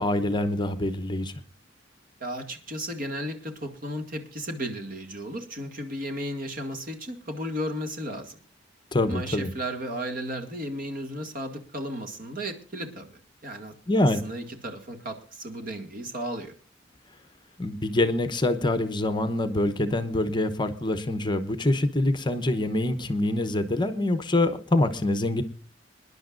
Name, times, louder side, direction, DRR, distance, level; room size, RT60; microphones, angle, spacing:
voice 1, 0.0-1.3 8.9-9.5 13.9-14.3 17.6-25.4, left 1 dB, 25° left, 10 dB, 0.9 m, -25 dB
voice 2, 2.2-8.4 9.1-13.7 14.2-16.5, equal, 50° right, 5 dB, 2.2 m, -34 dB
26.5 x 10.5 x 2.5 m, 0.39 s
head